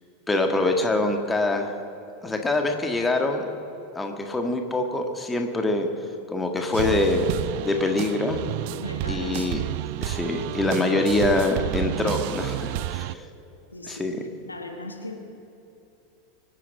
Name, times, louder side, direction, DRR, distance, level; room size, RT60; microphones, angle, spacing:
voice 1, 0.3-1.8 2.2-3.5 4.0-5.9 6.3-7.3 7.6-8.4 9.1-9.6 10.0-13.2 13.9-14.2, left 2 dB, 10° left, 4 dB, 1.8 m, -24 dB
sound 1, 6.7-13.1, right 16 dB, 50° right, 0.4 m, -30 dB
voice 2, 8.8-9.5 13.7-15.2, left 2 dB, 85° left, 4 dB, 1.7 m, -38 dB
24.0 x 9.8 x 6.1 m, 2.8 s
figure-of-eight pair, 85°, 0 cm